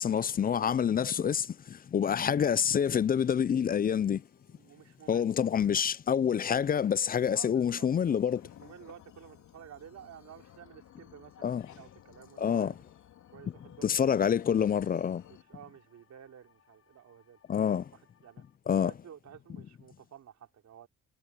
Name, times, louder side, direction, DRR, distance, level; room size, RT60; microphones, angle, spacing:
voice 1, 0.0-1.5 1.9-4.2 5.1-8.4 11.4-11.7 12.4-12.7 13.8-15.2 17.5-17.8 18.7-18.9, left 8 dB, 30° left, 0.4 m, -27 dB
sound 1, 2.6-18.6, left 7 dB, 50° left, 7.7 m, -69 dB
voice 2, 4.5-5.2 5.7-5.9 7.3-7.9 8.6-12.8 13.3-14.1 15.3-17.6 17.9-18.5 18.8-20.9, right 9 dB, 65° right, 4.0 m, -52 dB
sound 2, 8.4-15.4, left 11 dB, 75° left, 3.0 m, -56 dB
cardioid pair, 90°, 30 cm